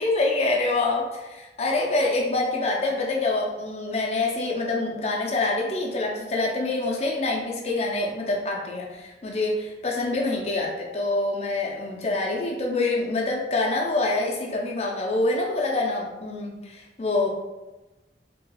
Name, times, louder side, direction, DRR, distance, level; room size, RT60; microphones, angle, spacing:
voice 1, 0.0-17.3, left 2 dB, 35° left, -1 dB, 0.5 m, -26 dB
3.1 x 2.8 x 2.2 m, 1.1 s
head